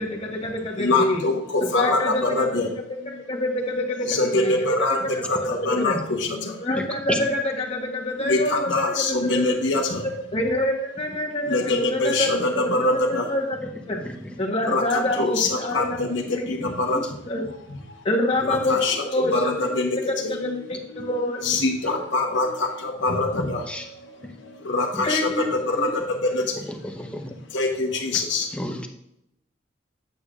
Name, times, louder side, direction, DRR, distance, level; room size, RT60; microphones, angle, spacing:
voice 1, 0.0-1.2 1.7-2.5 3.3-4.5 5.1-5.2 5.8-6.0 6.6-7.1 7.6-8.7 9.1-9.5 10.3-12.3 13.3-13.4 13.9-14.0 14.4-16.0 16.3-16.5 16.9-17.0 17.3-17.4 18.0-18.8 19.1-19.3 20.3-21.4 25.0-25.5 25.8-25.9, left 1 dB, 30° left, 0 dB, 1.3 m, -26 dB
voice 2, 0.7-3.2 4.0-6.7 8.2-10.3 11.4-13.3 14.6-18.1 18.4-21.1 21.4-26.6 27.5-28.5, left 2 dB, 70° left, 1 dB, 1.1 m, -25 dB
voice 3, 6.7-7.2 13.6-13.7 14.0-14.4 17.0-17.1 23.7-23.9 24.2-24.4 24.9-25.0 26.5-27.4 28.1-28.2 28.5-28.9, left 1 dB, 5° left, 3 dB, 0.8 m, -32 dB
8.4 x 8.3 x 2.4 m, 0.80 s
head